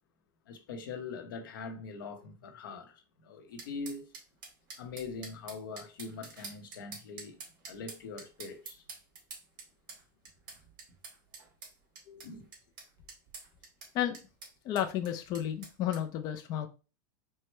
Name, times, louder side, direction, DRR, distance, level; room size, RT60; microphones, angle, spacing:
voice 1, 0.5-4.1 4.8-7.4 7.7-8.8 12.2-12.5, left 4 dB, 85° left, 0.9 m, -42 dB
sound 1, 3.6-16.0, right 4 dB, 40° right, 2.1 m, -48 dB
voice 2, 14.6-16.7, left 11 dB, 35° left, 0.4 m, -32 dB
4.7 x 2.1 x 4.4 m
supercardioid pair, 140°, 11 cm